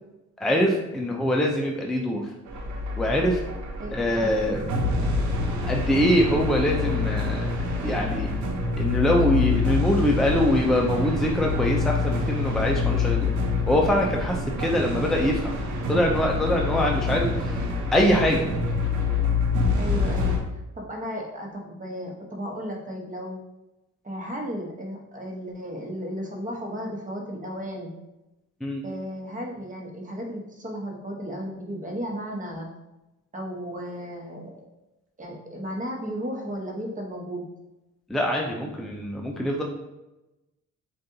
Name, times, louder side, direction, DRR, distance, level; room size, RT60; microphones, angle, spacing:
voice 1, 0.4-2.3 3.0-3.4 3.9-4.6 5.6-7.5 7.8-8.3 8.8-13.3 13.7-15.5 15.9-17.6 17.9-18.5 28.6-28.8 38.1-39.6, equal, ahead, -1 dB, 0.5 m, -23 dB
sound 1, 2.5-20.4, left 4 dB, 75° right, 0.9 m, -26 dB
voice 2, 3.8-4.3 19.8-20.3 20.7-23.4 24.0-27.9 28.8-32.7 33.3-34.6 35.2-37.4, equal, 25° right, 0 dB, 1.2 m, -34 dB
7.4 x 2.6 x 2.8 m, 0.98 s
cardioid pair, 90°, 30 cm